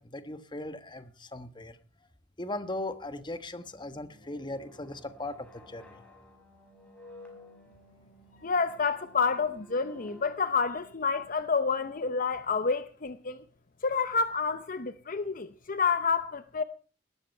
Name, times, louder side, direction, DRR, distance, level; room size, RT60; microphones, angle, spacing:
voice 1, 0.0-1.8 2.4-6.0, left 2 dB, 25° left, 1.3 m, -38 dB
sound 1, 3.7-12.5, left 1 dB, 5° left, 5.5 m, -55 dB
voice 2, 8.4-13.4 13.8-16.6, left 5 dB, 50° left, 0.8 m, -29 dB
19.0 x 13.0 x 4.5 m
head